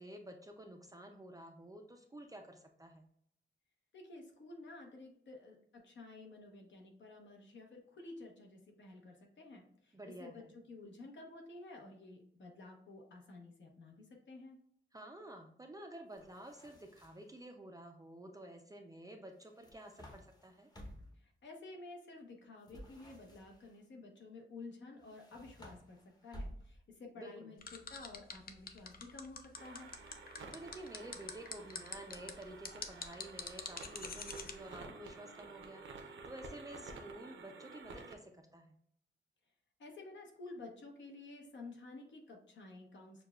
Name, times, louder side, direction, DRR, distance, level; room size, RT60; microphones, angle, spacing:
voice 1, 0.0-3.1 9.9-10.5 14.9-20.7 27.2-27.6 30.5-38.8, right 1 dB, 20° right, 3 dB, 0.4 m, -51 dB
voice 2, 3.9-14.6 21.2-29.9 39.8-43.2, left 2 dB, 70° left, 1 dB, 1.0 m, -52 dB
sound 1, 16.1-17.4 19.4-21.2 22.6-23.8 25.0-27.0, equal, 20° left, 0.8 m, -53 dB
sound 2, 27.6-34.5, left 5 dB, 50° left, 0.5 m, -44 dB
sound 3, 29.5-38.1, right 4 dB, 75° right, 0.6 m, -52 dB
6.4 x 2.3 x 2.3 m, 0.68 s
wide cardioid pair, 140°, 20 cm